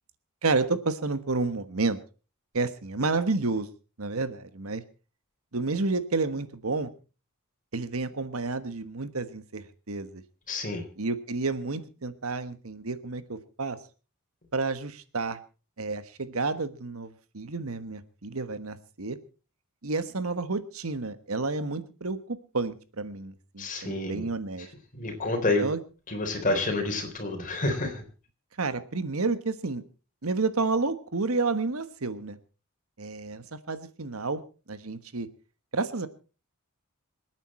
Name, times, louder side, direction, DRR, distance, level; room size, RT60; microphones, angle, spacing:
voice 1, 0.4-2.0 2.5-3.7 4.0-4.8 5.5-6.9 7.7-10.2 11.0-13.8 14.5-15.4 15.8-19.2 19.8-24.7 25.4-25.8 28.6-29.8 30.2-32.4 33.0-34.4 34.7-35.3 35.7-36.1, right 3 dB, 70° right, 12 dB, 1.3 m, -30 dB
voice 2, 10.5-10.8 23.6-24.2 24.9-25.6 26.1-28.0, left 2 dB, 40° left, 4 dB, 3.8 m, -28 dB
26.5 x 9.1 x 4.3 m, 0.35 s
head